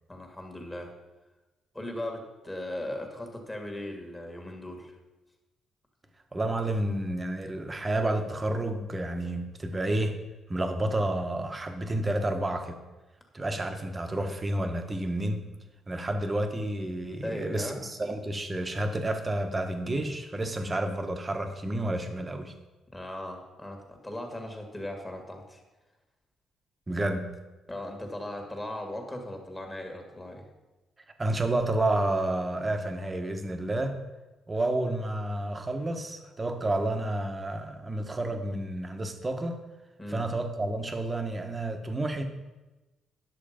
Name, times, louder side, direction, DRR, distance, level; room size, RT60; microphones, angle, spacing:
voice 1, 0.1-0.9 1.7-4.9 17.2-17.8 22.9-25.6 27.7-30.4 40.0-40.3, left 1 dB, 15° left, 2 dB, 2.1 m, -38 dB
voice 2, 6.3-10.2 10.5-12.8 13.3-15.5 15.9-22.5 26.9-27.3 31.2-34.0 34.5-39.6 40.1-42.2, right 1 dB, 25° right, 5 dB, 1.2 m, -30 dB
10.5 x 6.6 x 5.1 m, 1.1 s
cardioid pair, 90°, 0 cm